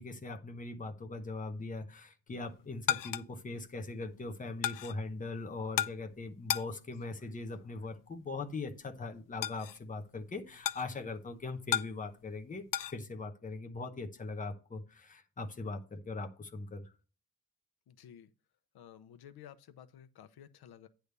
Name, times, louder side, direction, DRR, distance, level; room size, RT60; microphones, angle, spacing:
voice 1, 0.0-16.9, left 3 dB, 20° left, 0.9 m, -41 dB
sound 1, 2.3-13.0, left 12 dB, 60° left, 0.5 m, -39 dB
voice 2, 17.9-18.3 18.7-20.9, left 9 dB, 85° left, 0.8 m, -53 dB
9.6 x 3.5 x 6.7 m
wide cardioid pair, 165°, 37 cm